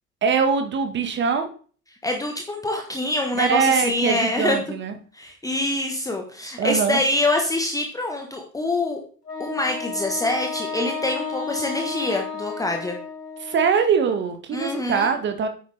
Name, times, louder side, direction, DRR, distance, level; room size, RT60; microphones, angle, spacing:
voice 1, 0.2-1.5 3.3-4.9 6.6-7.0 13.4-15.5, right 6 dB, 25° right, 8 dB, 1.5 m, -22 dB
voice 2, 2.0-4.6 5.1-9.0 9.4-13.0 14.5-15.1, left 2 dB, 5° left, 2 dB, 1.3 m, -25 dB
Wind instrument woodwind instrument, 9.3-13.9, left 5 dB, 90° left, 1.7 m, -32 dB
9.2 x 9.0 x 3.4 m, 0.43 s
figure-of-eight pair, 90°, 47 cm